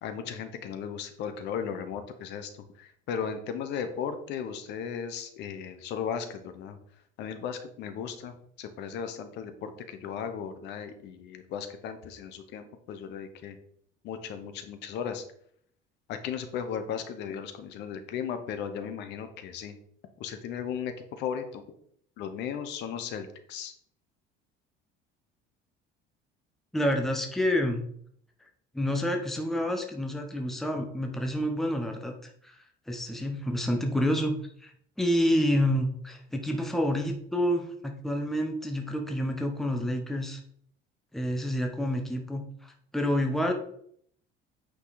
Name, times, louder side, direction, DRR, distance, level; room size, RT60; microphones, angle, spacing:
voice 1, 0.0-2.5 2.8-6.8 7.2-13.6 14.0-15.2 16.1-19.8 20.2-21.6 22.2-23.7, left 7 dB, 60° left, 8 dB, 1.1 m, -36 dB
voice 2, 26.7-27.8 28.7-32.6 32.9-34.3 34.6-34.7 35.0-40.4 41.1-43.5, equal, ahead, 3 dB, 0.8 m, -28 dB
8.8 x 5.4 x 4.1 m, 0.65 s
cardioid pair, 170°, 20 cm